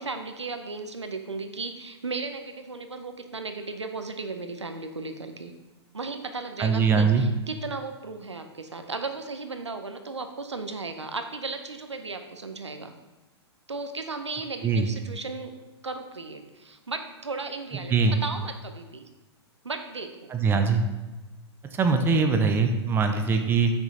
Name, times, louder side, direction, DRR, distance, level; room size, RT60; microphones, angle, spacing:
voice 1, 0.0-5.5 5.9-12.9 13.7-15.5 15.8-19.1 19.6-20.3, right 3 dB, 85° right, 7 dB, 0.6 m, -35 dB
voice 2, 6.6-7.2 14.6-14.9 17.9-18.2 20.3-20.8 21.7-23.7, right 5 dB, 15° right, 6 dB, 0.5 m, -22 dB
7.4 x 6.2 x 2.7 m, 1.2 s
figure-of-eight pair, 105°, 14 cm